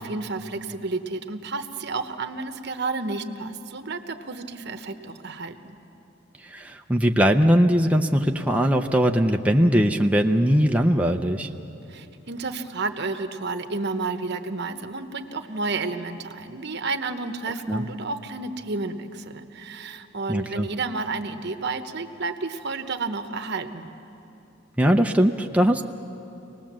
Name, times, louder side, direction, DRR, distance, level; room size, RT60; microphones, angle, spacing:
voice 1, 0.0-5.8 11.9-23.9, right 3 dB, 60° right, 8 dB, 1.0 m, -31 dB
voice 2, 6.4-11.5 17.7-17.8 20.3-20.7 24.8-25.8, equal, 5° right, 3 dB, 0.5 m, -20 dB
25.5 x 19.0 x 7.4 m, 2.9 s
head